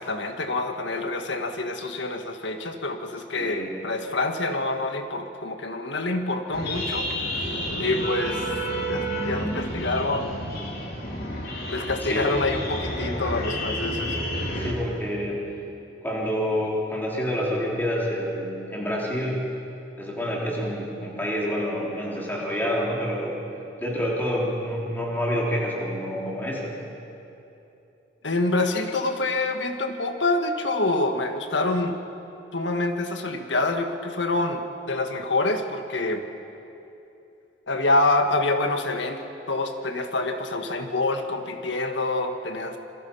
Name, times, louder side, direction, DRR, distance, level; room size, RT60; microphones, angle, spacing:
voice 1, 0.0-8.5 8.9-10.3 11.7-14.2 28.2-32.0 32.5-36.3 37.7-39.2 39.5-42.8, left 2 dB, 75° left, 6 dB, 1.7 m, -26 dB
voice 2, 3.3-3.8 12.0-12.4 14.6-15.4 16.0-19.5 20.0-23.4 23.8-26.7, equal, 10° left, -4 dB, 4.1 m, -28 dB
sound 1, 6.5-14.7, equal, 55° left, 3.6 m, -30 dB
27.0 x 23.0 x 5.7 m, 2.9 s
head